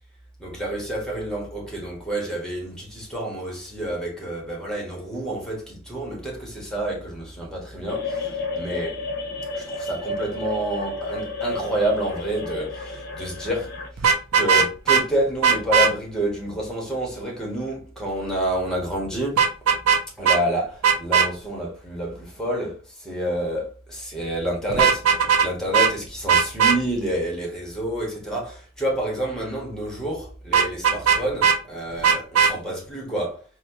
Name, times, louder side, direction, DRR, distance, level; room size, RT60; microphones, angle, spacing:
voice 1, 0.4-9.0 9.5-19.5 20.2-33.4, right 1 dB, 5° left, 1.2 m, -28 dB
sound 1, 7.9-13.9, left 2 dB, 45° left, 0.8 m, -31 dB
Vehicle horn car horn honking, 14.0-15.0 15.4-15.9 19.4-20.0 20.2-20.4 20.8-21.3 24.7-25.5 25.7-25.9 26.3-26.8 30.5-31.6 32.0-32.5, right 6 dB, 75° right, 0.6 m, -18 dB
4.2 x 2.2 x 2.8 m
head